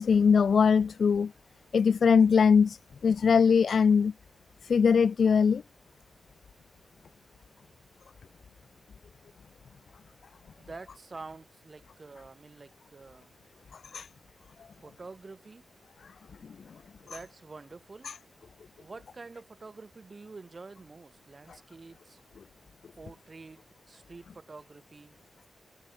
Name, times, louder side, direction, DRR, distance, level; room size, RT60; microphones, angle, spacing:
voice 1, 0.0-1.3 1.7-4.1 4.6-5.6 13.7-14.1 17.1-17.2 18.0-18.1, left 6 dB, 65° left, 0.4 m, -22 dB
voice 2, 10.6-13.4 14.8-15.6 17.0-18.1 18.8-22.2 23.0-25.2, right 3 dB, 35° right, 5.8 m, -47 dB
wide cardioid pair, 125°, 0 cm